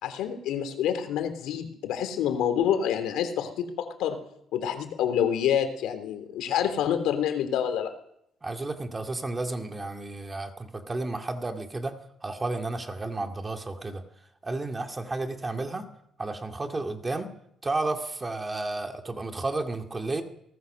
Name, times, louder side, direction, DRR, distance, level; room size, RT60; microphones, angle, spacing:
voice 1, 0.0-4.2 4.5-7.9, left 9 dB, 85° left, 9 dB, 3.3 m, -27 dB
voice 2, 8.4-14.0 14.4-15.8 16.2-17.3 17.6-20.2, right 2 dB, 15° right, 4 dB, 2.2 m, -32 dB
24.0 x 19.0 x 6.7 m, 0.74 s
cardioid pair, 160°, 0 cm